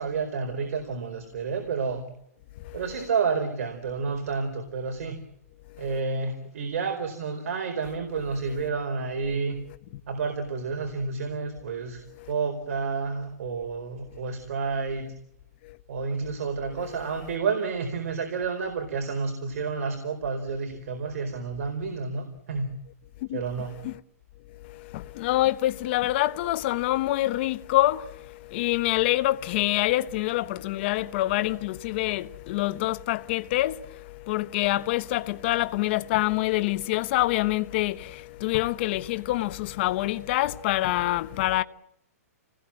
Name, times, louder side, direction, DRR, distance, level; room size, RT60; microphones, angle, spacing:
voice 1, 0.0-2.0 2.7-5.2 5.8-9.6 10.1-15.1 15.9-22.7 23.3-23.7, right 5 dB, 65° right, 4.5 m, -30 dB
voice 2, 24.6-41.6, left 16 dB, 45° left, 1.1 m, -26 dB
29.5 x 19.5 x 7.7 m
hypercardioid pair, 150°, 9 cm